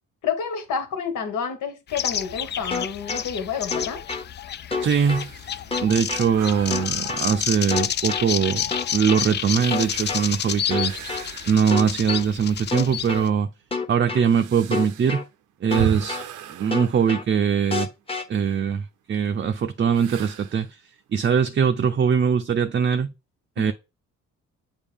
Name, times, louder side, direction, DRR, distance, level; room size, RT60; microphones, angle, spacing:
voice 1, 0.2-4.0 23.6-23.7, left 6 dB, 80° left, 1.7 m, -29 dB
sound 1, 1.9-13.3, left 9 dB, 35° left, 0.4 m, -30 dB
sound 2, 2.7-3.2 3.7-4.2 4.7-5.2 5.7-6.2 6.7-7.2 7.7-8.2 8.7-9.2 9.7-10.2 10.7-11.2 11.7-12.2 12.7-13.2 13.7-14.2 14.7-15.2 15.7-16.2 16.7-17.2 17.7-18.2, left 4 dB, 20° left, 1.0 m, -28 dB
voice 2, 4.8-5.3 5.8-8.6 8.9-10.9 11.5-13.5 13.9-15.2 15.6-16.2 16.5-17.9 18.3-20.7 21.1-23.1 23.6-23.7, right 7 dB, 35° right, 0.5 m, -22 dB
Breathing Sighs, 4.8-12.0 12.5-12.6 13.3-17.9 19.9-20.7, right 9 dB, 80° right, 0.7 m, -37 dB
7.2 x 4.5 x 3.5 m
cardioid pair, 90°, 30 cm